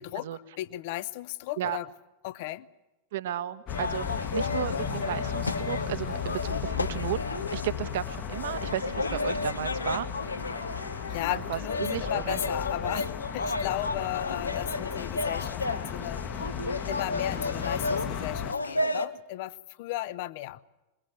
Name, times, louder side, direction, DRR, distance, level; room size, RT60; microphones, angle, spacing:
voice 1, 0.0-1.9 2.2-2.7 11.1-16.5 16.9-20.6, left 16 dB, 50° left, 18 dB, 0.8 m, -35 dB
voice 2, 3.1-10.1 11.3-12.4, right 12 dB, 55° right, 13 dB, 1.2 m, -34 dB
sound 1, 3.7-19.0, left 3 dB, 80° left, 1.1 m, -33 dB
sound 2, 3.7-18.5, left 9 dB, 30° left, 1.1 m, -36 dB
22.0 x 22.0 x 8.6 m, 1.0 s
figure-of-eight pair, 90°, 0 cm